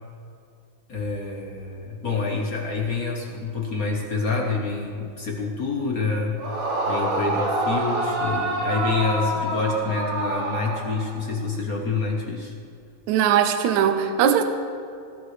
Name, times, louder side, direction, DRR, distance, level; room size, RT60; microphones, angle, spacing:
voice 1, 0.9-6.4 6.9-12.5, left 4 dB, 60° left, 0 dB, 0.9 m, -27 dB
Yell / Screaming, 6.4-11.3, right 2 dB, 55° right, 2.6 m, -26 dB
voice 2, 13.1-14.4, right 9 dB, 75° right, 7 dB, 2.0 m, -20 dB
20.5 x 13.5 x 3.3 m, 2.4 s
omnidirectional pair, 3.4 m